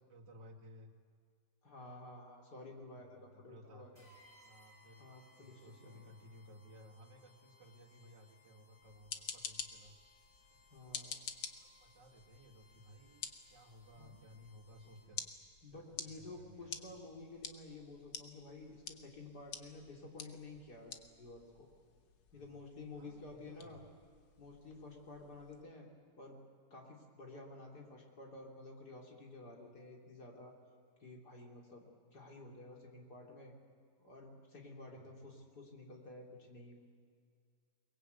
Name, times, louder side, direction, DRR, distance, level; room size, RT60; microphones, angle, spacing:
voice 1, 0.1-0.9 2.9-4.1 4.4-5.1 5.4-9.9 10.5-10.6 11.6-15.3 15.7-16.9 22.3-22.6 22.9-23.8 34.9-35.2, equal, 90° right, 2 dB, 2.7 m, -58 dB
voice 2, 1.6-3.9 5.0-6.1 10.7-11.3 14.0-14.2 15.6-21.7 22.3-23.8 24.4-25.9 26.2-26.4 26.7-30.6 31.0-33.5 34.0-36.8, left 2 dB, 65° left, -1 dB, 3.9 m, -52 dB
sound 1, 3.9-15.3, left 1 dB, 30° left, 3.4 m, -67 dB
sound 2, 8.8-25.6, left 7 dB, 85° left, 1.9 m, -50 dB
23.0 x 20.5 x 8.2 m, 2.2 s
omnidirectional pair, 1.9 m